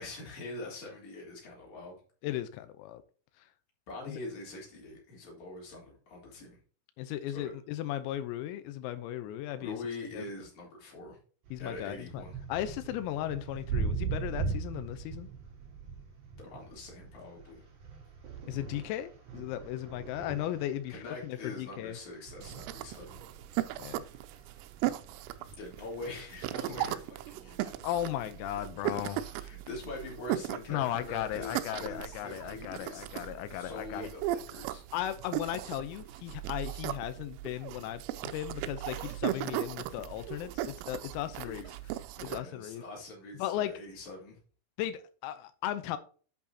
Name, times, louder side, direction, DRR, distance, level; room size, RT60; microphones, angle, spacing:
voice 1, 0.0-2.0 3.9-6.6 7.3-7.5 9.5-11.2 11.6-12.3 16.4-17.6 20.9-23.2 25.6-27.8 29.1-34.8 41.4-41.7 42.1-44.4, left 2 dB, 40° left, 4.3 m, -44 dB
voice 2, 2.2-3.0 4.1-4.2 7.0-9.8 10.1-10.3 11.5-12.2 12.5-15.3 18.5-22.0 23.8-24.0 27.8-29.5 30.7-34.1 34.9-41.6 42.2-42.8 43.4-43.7 44.8-46.0, left 12 dB, 90° left, 3.6 m, -36 dB
sound 1, 11.5-25.5, right 5 dB, 50° right, 4.1 m, -40 dB
sound 2, 22.4-42.4, right 14 dB, 85° right, 3.3 m, -38 dB
8.6 x 8.4 x 2.8 m
omnidirectional pair, 6.0 m